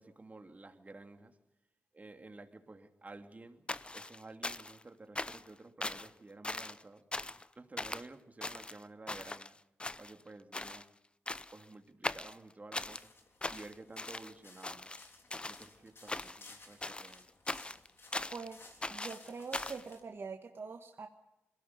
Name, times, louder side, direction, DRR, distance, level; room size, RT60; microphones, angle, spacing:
voice 1, 0.0-1.4 1.9-7.0 7.6-9.6 10.0-10.9 11.5-13.1 13.5-15.0 15.4-17.3, right 2 dB, 30° right, 6 dB, 2.5 m, -52 dB
sound 1, 3.7-4.8 5.2-5.5 5.8-6.1 6.4-6.8 7.1-7.5 7.8-8.1 8.4-9.5 9.8-10.3 10.5-10.8 11.3-11.6 12.0-13.0 13.4-14.3 14.6-15.7 16.1-16.5 16.8-18.5 18.8-19.8, left 2 dB, 20° left, 0.7 m, -40 dB
sound 2, 12.8-20.0, left 3 dB, 50° left, 3.7 m, -58 dB
voice 2, 18.3-21.1, right 4 dB, 50° right, 4 dB, 1.5 m, -44 dB
22.0 x 16.5 x 9.5 m, 0.94 s
cardioid pair, 55°, 5 cm